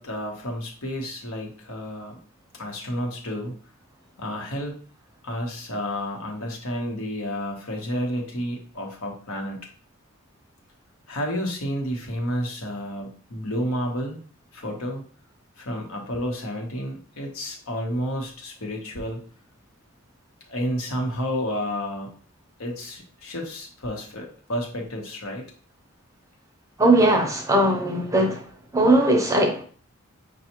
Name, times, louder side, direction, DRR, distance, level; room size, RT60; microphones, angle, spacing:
voice 1, 0.0-2.2 2.6-3.5 4.2-4.7 5.2-9.6 11.1-14.2 14.5-15.0 15.6-19.2 20.5-22.1 22.6-25.4, equal, 75° left, 0 dB, 1.1 m, -30 dB
voice 2, 26.8-28.4 28.7-29.6, right 1 dB, 15° right, 2 dB, 0.6 m, -19 dB
5.4 x 2.3 x 2.9 m, 0.43 s
head